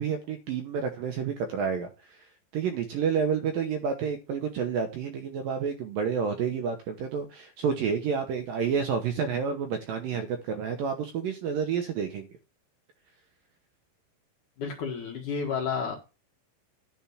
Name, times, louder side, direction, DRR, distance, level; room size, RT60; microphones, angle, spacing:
voice 1, 0.0-12.3, right 6 dB, 75° right, 2.1 m, -30 dB
voice 2, 14.6-16.0, left 6 dB, 60° left, 2.4 m, -31 dB
10.5 x 4.5 x 7.0 m
omnidirectional pair, 5.3 m